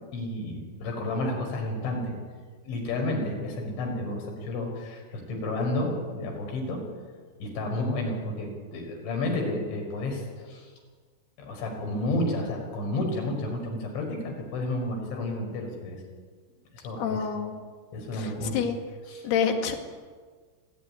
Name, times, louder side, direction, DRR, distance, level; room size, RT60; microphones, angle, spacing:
voice 1, 0.1-2.1 2.6-6.8 7.4-10.7 11.4-16.0 16.7-17.2 17.9-18.6 19.1-19.2, left 1 dB, 85° left, 1 dB, 7.9 m, -31 dB
voice 2, 17.0-17.6 18.1-18.8 19.2-19.8, left 7 dB, 65° left, 3 dB, 4.1 m, -28 dB
26.5 x 15.5 x 9.9 m, 1.5 s
omnidirectional pair, 5.1 m